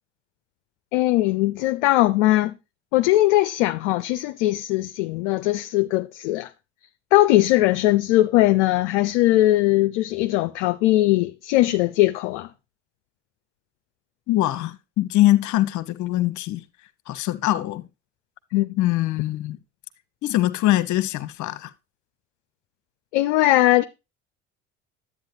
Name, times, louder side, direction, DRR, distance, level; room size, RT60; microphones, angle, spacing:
voice 1, 0.9-2.5 2.9-6.5 7.1-12.5 18.5-18.7 23.1-23.8, left 16 dB, 75° left, 0.5 m, -20 dB
voice 2, 14.3-16.6 17.1-17.8 18.8-19.6 20.2-21.7, left 15 dB, 55° left, 1.0 m, -22 dB
10.5 x 8.4 x 2.7 m
hypercardioid pair, 60°, 35 cm